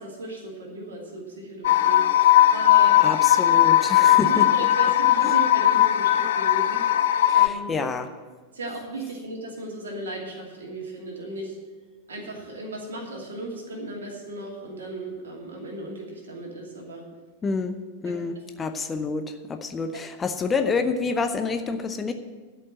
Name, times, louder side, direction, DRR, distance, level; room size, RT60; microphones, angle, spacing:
voice 1, 0.0-3.0 3.5-3.6 4.2-7.1 7.3-7.8 8.5-11.6 12.1-17.0 18.0-18.4, right 2 dB, 65° right, -1 dB, 2.6 m, -36 dB
sound 1, 1.6-7.5, left 12 dB, 60° left, 0.5 m, -18 dB
voice 2, 3.0-4.5 5.2-5.3 7.3-8.1 17.4-17.8 18.0-22.1, left 4 dB, 20° left, 7 dB, 0.7 m, -28 dB
11.5 x 5.4 x 8.7 m, 1.3 s
figure-of-eight pair, 90°, 0 cm